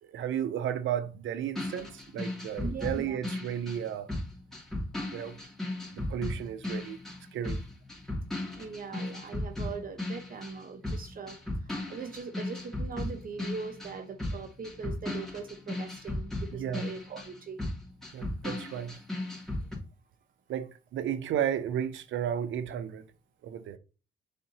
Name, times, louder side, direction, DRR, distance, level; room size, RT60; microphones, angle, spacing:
voice 1, 0.0-4.1 5.1-5.4 5.9-7.0 7.3-7.6 16.5-16.9 18.1-19.0 20.5-23.1 23.4-23.8, right 9 dB, 75° right, 0.8 m, -33 dB
sound 1, 1.5-10.6 10.8-19.8, left 1 dB, ahead, 2.8 m, -36 dB
voice 2, 2.6-3.2 8.5-17.6, right 5 dB, 45° right, 0.9 m, -41 dB
7.8 x 4.3 x 2.9 m
cardioid pair, 90°, 20 cm